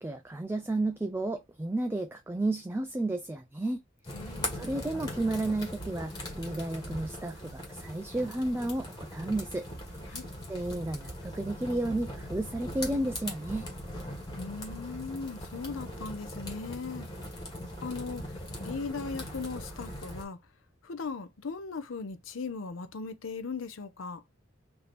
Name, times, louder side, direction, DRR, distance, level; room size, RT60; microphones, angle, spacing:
voice 1, 0.0-3.8 4.2-9.7 10.1-10.2 10.5-13.7, right 2 dB, 10° right, 0.3 m, -32 dB
sound 1, 4.0-20.2, left 1 dB, 20° left, 1.4 m, -40 dB
voice 2, 4.1-4.7 10.1-10.3 14.3-17.1 17.8-20.4 20.8-24.2, left 4 dB, 85° left, 0.6 m, -38 dB
3.3 x 2.8 x 4.1 m
head